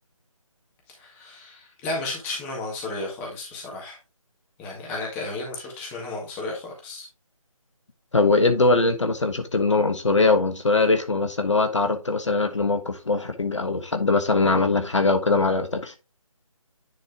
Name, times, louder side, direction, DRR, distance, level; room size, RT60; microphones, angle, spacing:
voice 1, 1.0-4.0 4.6-7.1, left 2 dB, 10° left, 1.8 m, -33 dB
voice 2, 8.1-15.9, left 3 dB, 55° left, 1.2 m, -21 dB
9.9 x 4.2 x 3.5 m
figure-of-eight pair, 155°, 18 cm